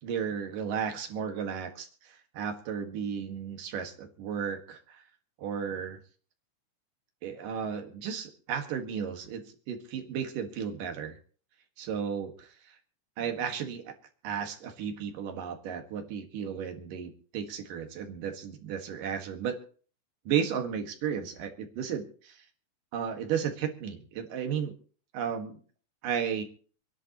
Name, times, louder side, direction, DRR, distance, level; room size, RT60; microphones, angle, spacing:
voice 1, 0.0-5.0 5.4-6.0 7.2-11.2 11.8-12.8 13.2-13.9 14.2-19.6 20.3-22.4 22.9-24.7 25.1-25.6 26.0-26.4, right 7 dB, 80° right, 5 dB, 3.4 m, -34 dB
27.0 x 11.0 x 3.0 m, 0.42 s
omnidirectional pair, 3.7 m